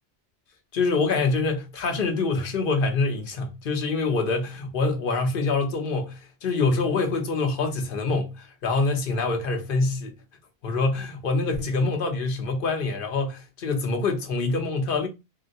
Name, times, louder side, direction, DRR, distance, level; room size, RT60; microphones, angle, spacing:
voice 1, 0.7-10.2 10.6-15.1, left 3 dB, 55° left, 0.8 m, -25 dB
3.7 x 2.1 x 2.6 m
omnidirectional pair, 1.2 m